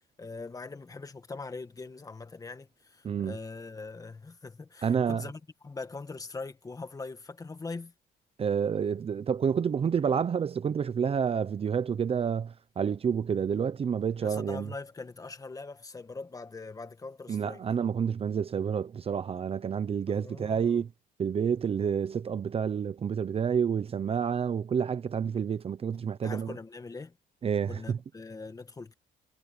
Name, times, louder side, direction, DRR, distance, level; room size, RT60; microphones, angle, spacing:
voice 1, 0.2-7.9 14.2-17.6 20.1-20.8 26.2-27.1 27.7-28.9, left 3 dB, 20° left, 1.9 m, -42 dB
voice 2, 3.0-3.4 4.8-5.2 8.4-14.7 17.3-20.9 21.2-26.5 27.4-28.0, right 7 dB, 35° right, 0.9 m, -29 dB
cardioid pair, 110°, 17 cm